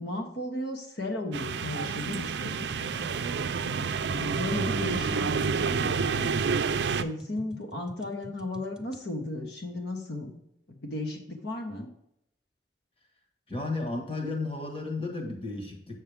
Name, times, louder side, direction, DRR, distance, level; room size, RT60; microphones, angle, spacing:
voice 1, 0.0-3.1 4.1-10.4 10.8-11.9, left 2 dB, 65° left, 2 dB, 1.3 m, -35 dB
sound 1, 1.3-7.0, right 5 dB, 75° right, 0.5 m, -29 dB
sound 2, 2.7-9.0, equal, 5° right, 0.3 m, -48 dB
voice 2, 13.5-16.0, left 3 dB, 30° left, 2 dB, 1.5 m, -33 dB
8.2 x 6.4 x 3.5 m, 0.78 s
head